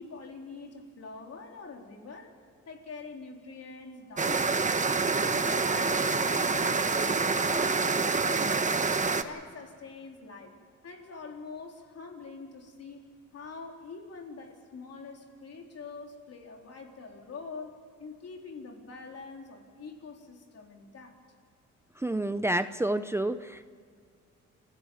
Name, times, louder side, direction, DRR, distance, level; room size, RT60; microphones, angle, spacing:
voice 1, 0.0-2.3 2.7-4.8 5.2-8.9 9.2-10.5 10.8-13.0 13.3-17.7 18.0-21.2, left 4 dB, 55° left, 2 dB, 4.0 m, -44 dB
sound 1, 4.2-9.2, right 4 dB, 25° right, 1.3 m, -27 dB
voice 2, 22.0-23.7, right 1 dB, 10° right, 11 dB, 0.7 m, -29 dB
27.0 x 16.0 x 7.2 m, 2.2 s
cardioid pair, 90°, 30 cm